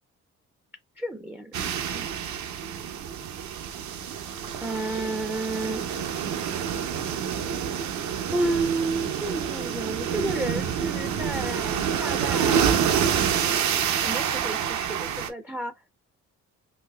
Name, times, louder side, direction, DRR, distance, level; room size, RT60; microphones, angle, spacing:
voice 1, 1.0-2.1 4.6-5.8 8.3-12.9 13.9-16.0, right 2 dB, 5° right, 0.4 m, -31 dB
sound 1, 1.5-15.3, right 8 dB, 70° right, 0.6 m, -27 dB
4.1 x 2.4 x 2.2 m
cardioid pair, 90°, 30 cm